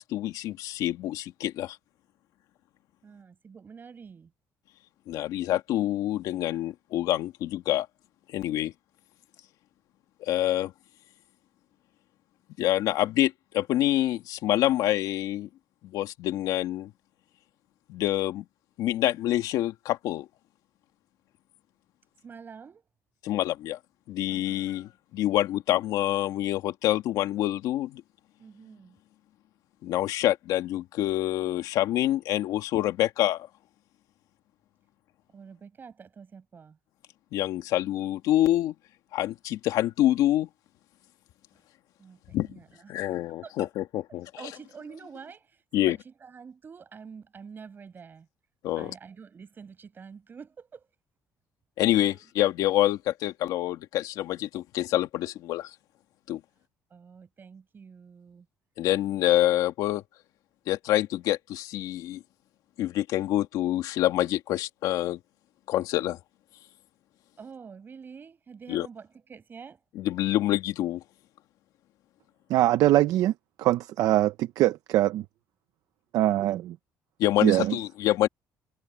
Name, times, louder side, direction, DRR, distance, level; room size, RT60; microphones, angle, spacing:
voice 1, 0.0-1.8 5.1-7.9 8.3-8.7 10.2-10.7 12.6-15.5 15.8-16.9 17.9-18.5 18.8-20.3 23.2-23.8 24.1-28.0 29.8-33.5 37.3-38.7 39.1-40.5 42.3-42.5 42.9-44.3 45.7-46.0 48.6-48.9 51.8-55.7 56.3-56.4 58.8-60.0 60.7-62.2 62.8-65.2 65.7-66.2 68.7-68.9 70.0-71.0 77.2-78.3, left 14 dB, 80° left, 2.1 m, -26 dB
voice 2, 3.0-4.3 22.2-22.9 24.3-24.9 28.4-29.0 35.3-36.8 41.5-41.6 42.0-43.7 44.4-48.3 48.7-50.9 52.0-52.2 56.9-58.5 67.4-69.8, right 6 dB, 35° right, 6.1 m, -47 dB
voice 3, 72.5-73.3 73.6-75.2 76.1-76.6 77.4-77.8, right 14 dB, 70° right, 0.7 m, -22 dB
cardioid pair, 120°, 6 cm